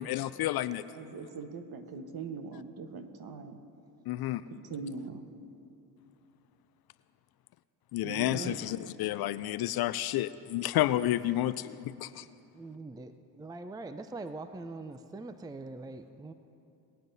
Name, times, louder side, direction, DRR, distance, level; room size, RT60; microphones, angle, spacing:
voice 1, 0.0-0.8 4.1-4.4 7.9-12.2, left 14 dB, 55° left, 15 dB, 0.5 m, -30 dB
voice 2, 0.9-3.6 4.5-5.3 8.0-8.6, right 4 dB, 50° right, 7 dB, 1.3 m, -41 dB
voice 3, 8.2-8.7 12.5-13.1 13.4-16.3, right 3 dB, 10° right, 10 dB, 0.5 m, -43 dB
22.5 x 9.3 x 2.7 m, 2.7 s
hypercardioid pair, 55°, 47 cm